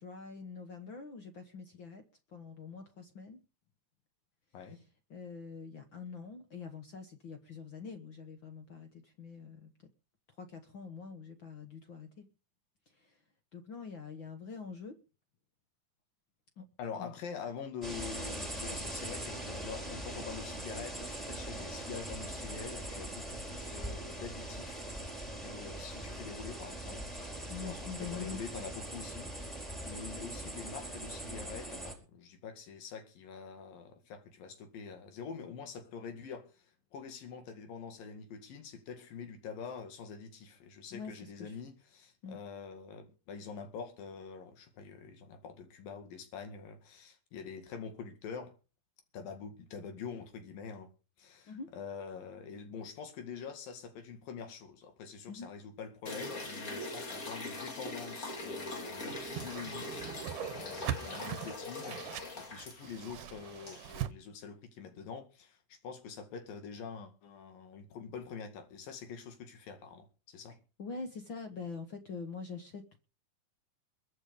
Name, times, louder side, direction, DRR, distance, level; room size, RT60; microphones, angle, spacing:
voice 1, 0.0-3.4 5.1-9.7 10.4-12.3 13.0-13.1 13.5-14.9 16.6-16.7 17.0-17.1 27.5-28.4 40.9-41.6 42.2-42.4 51.5-51.7 55.3-55.5 70.8-73.0, left 5 dB, 55° left, 1.3 m, -45 dB
voice 2, 16.8-24.9 25.4-27.2 27.6-29.3 29.8-48.6 49.1-50.9 51.2-70.6, left 6 dB, 80° left, 3.8 m, -45 dB
sound 1, 17.8-31.9, right 1 dB, ahead, 3.7 m, -41 dB
sound 2, 56.1-64.1, left 2 dB, 30° left, 2.2 m, -42 dB
Whoosh swoosh swish, 59.1-64.1, right 12 dB, 75° right, 2.2 m, -41 dB
22.0 x 8.5 x 5.3 m
omnidirectional pair, 3.9 m